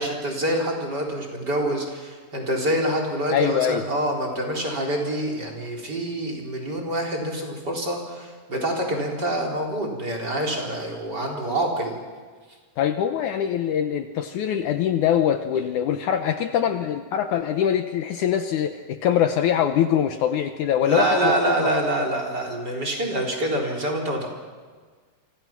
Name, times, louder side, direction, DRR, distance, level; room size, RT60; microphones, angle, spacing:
voice 1, 0.0-12.0 20.8-24.3, right 1 dB, 30° right, 1 dB, 4.5 m, -26 dB
voice 2, 3.3-3.9 12.8-21.7, left 9 dB, 70° left, 7 dB, 2.1 m, -23 dB
28.5 x 25.0 x 6.0 m, 1.5 s
omnidirectional pair, 4.0 m